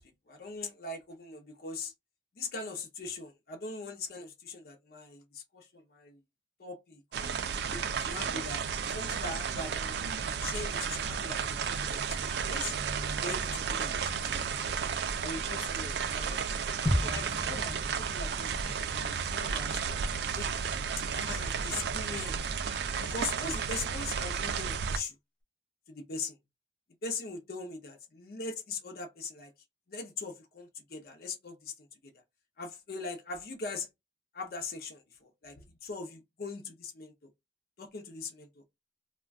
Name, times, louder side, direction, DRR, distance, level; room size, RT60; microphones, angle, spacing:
voice 1, 0.3-1.9 2.4-6.2 6.6-10.0 10.4-12.7 13.2-14.5 15.2-19.8 20.3-20.8 21.1-22.4 23.0-25.1 25.9-26.4 27.0-29.5 29.9-31.7 32.0-32.1 32.6-33.9 34.3-37.3 37.8-38.6, left 3 dB, 55° left, 0.5 m, -41 dB
sound 1, 7.1-25.0, right 6 dB, 65° right, 0.3 m, -33 dB
sound 2, 16.9-20.8 21.1-21.2, equal, 5° left, 0.5 m, -36 dB
2.4 x 2.1 x 3.4 m
head